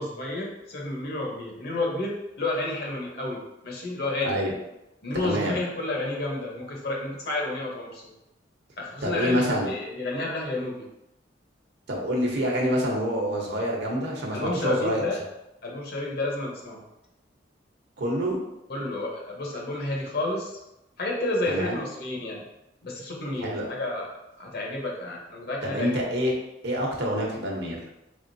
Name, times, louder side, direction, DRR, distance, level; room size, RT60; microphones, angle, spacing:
voice 1, 0.0-4.4 5.0-8.1 8.8-10.8 14.3-15.2 15.6-16.8 18.7-20.5 21.0-22.4 22.8-24.1 24.4-26.0, left 2 dB, 60° left, -1 dB, 1.0 m, -30 dB
voice 2, 4.2-4.5 5.2-5.6 9.0-9.7 11.9-15.0 18.0-18.4 21.5-21.8 23.4-23.7 25.6-26.3 26.6-27.8, equal, 65° right, -1 dB, 0.9 m, -26 dB
3.8 x 3.5 x 2.7 m, 0.91 s
head